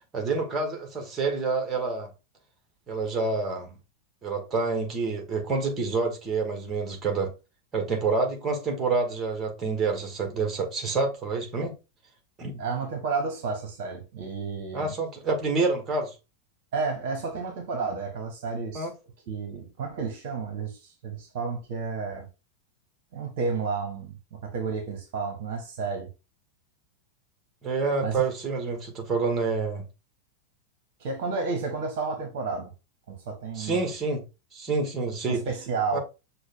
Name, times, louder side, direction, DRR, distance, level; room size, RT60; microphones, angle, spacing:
voice 1, 0.1-2.1 2.9-3.7 4.2-7.3 7.7-11.7 12.4-12.5 14.7-16.1 18.7-18.9 27.6-29.8 33.5-34.2 34.5-35.4 35.9-36.0, right 4 dB, 20° right, 1.4 m, -28 dB
voice 2, 12.6-14.9 16.7-18.9 19.3-22.3 23.1-26.1 28.0-28.3 31.0-32.7 33.1-33.9 35.3-36.0, right 4 dB, 50° right, 1.1 m, -31 dB
6.1 x 2.2 x 3.6 m
figure-of-eight pair, 90°, 0 cm